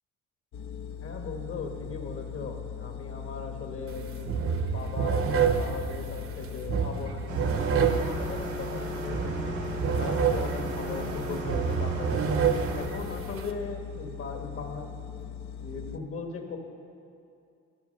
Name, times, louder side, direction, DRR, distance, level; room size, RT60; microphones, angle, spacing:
sound 1, 0.5-16.0, left 7 dB, 70° left, 0.6 m, -40 dB
voice 1, 1.0-14.9 15.6-16.6, left 4 dB, 50° left, 4 dB, 1.3 m, -38 dB
sound 2, 3.9-4.0 4.3-13.5, right 7 dB, 45° right, 0.6 m, -29 dB
sound 3, 7.3-12.9, right 2 dB, 90° right, 1.5 m, -36 dB
12.0 x 5.7 x 6.5 m, 2.5 s
cardioid pair, 90°, 30 cm